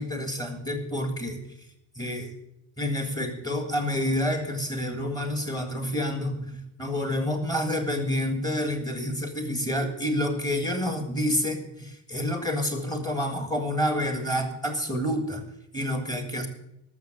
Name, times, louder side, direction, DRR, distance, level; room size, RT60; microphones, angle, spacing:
voice 1, 0.0-1.4 1.9-2.3 2.8-15.5 15.7-16.5, left 1 dB, 10° left, 5 dB, 1.7 m, -28 dB
13.0 x 6.9 x 9.0 m, 0.85 s
cardioid pair, 160°, 49 cm